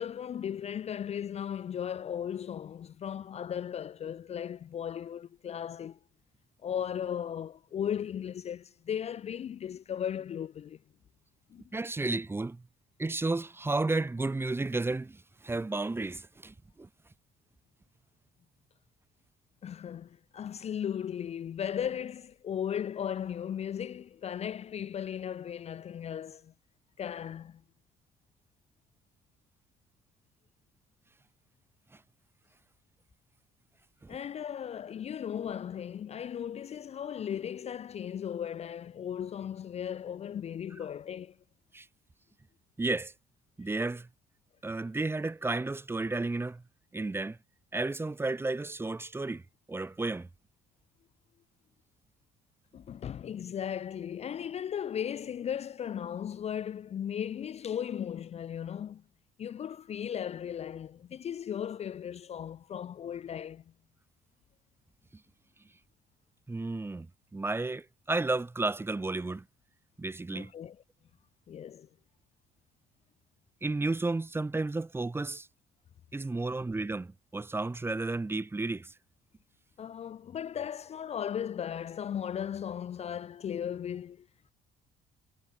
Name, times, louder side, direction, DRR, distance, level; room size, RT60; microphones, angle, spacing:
voice 1, 0.0-6.0 6.6-10.8 11.5-11.6 19.6-26.5 27.0-27.6 34.1-41.4 52.7-59.0 59.4-63.6 70.3-70.8 71.5-71.9 79.8-84.3, left 9 dB, 40° left, 0.5 m, -36 dB
voice 2, 11.7-12.6 13.0-16.9 34.0-34.2 41.7-41.9 42.8-43.1 43.6-44.1 44.6-46.6 46.9-47.4 47.7-49.4 49.7-50.3 66.5-67.1 67.3-69.4 70.0-70.5 73.6-75.5 76.1-78.9, right 3 dB, 15° right, 1.0 m, -32 dB
cardioid pair, 110°, 17 cm